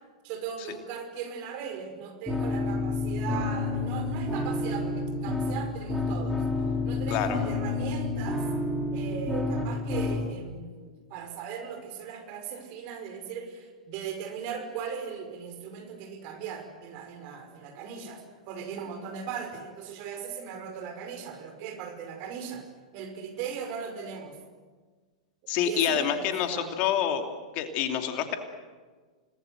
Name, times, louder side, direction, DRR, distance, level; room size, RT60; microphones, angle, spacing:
voice 1, 0.2-6.4 6.8-8.5 8.9-22.7 22.9-24.4 25.5-26.7, right 7 dB, 45° right, 6 dB, 5.6 m, -38 dB
sound 1, 2.3-10.3, left 3 dB, 5° left, 4.3 m, -29 dB
voice 2, 7.1-7.4 25.5-27.2 27.5-28.4, left 9 dB, 45° left, 5 dB, 2.8 m, -27 dB
30.0 x 20.0 x 8.0 m, 1.4 s
figure-of-eight pair, 100°, 4 cm